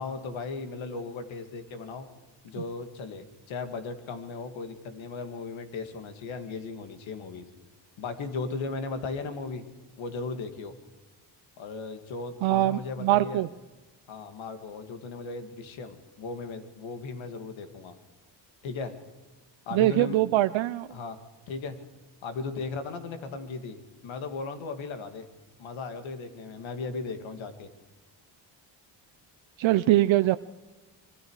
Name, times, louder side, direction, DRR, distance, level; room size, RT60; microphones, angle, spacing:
voice 1, 0.0-2.1 2.4-7.4 8.0-9.6 10.0-10.7 11.6-13.4 14.1-18.0 18.6-18.9 19.7-20.2 20.9-21.2 21.5-21.8 22.2-25.3 25.6-27.7, left 4 dB, 90° left, 8 dB, 2.4 m, -36 dB
voice 2, 12.4-13.5 19.7-20.9 29.6-30.4, right 15 dB, 85° right, 11 dB, 0.7 m, -23 dB
25.5 x 23.0 x 4.9 m, 1.1 s
cardioid pair, 105°, 45 cm